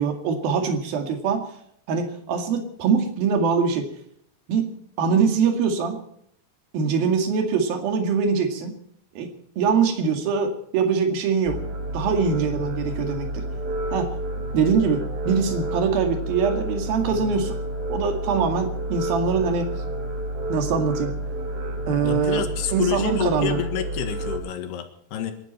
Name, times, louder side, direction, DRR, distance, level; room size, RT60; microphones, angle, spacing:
voice 1, 0.0-1.5 1.9-3.9 4.5-4.7 5.0-6.0 6.7-8.7 9.2-9.3 9.6-11.6 11.9-13.5 13.9-14.1 14.5-17.6 17.9-19.7 20.5-21.1 21.9-22.5 22.7-23.6, right 5 dB, 70° right, 5 dB, 3.9 m, -23 dB
sound 1, 11.5-24.4, right 1 dB, 40° right, 3.0 m, -30 dB
voice 2, 22.0-25.3, left 9 dB, 85° left, 7 dB, 3.8 m, -28 dB
25.5 x 12.5 x 4.3 m, 0.69 s
omnidirectional pair, 4.5 m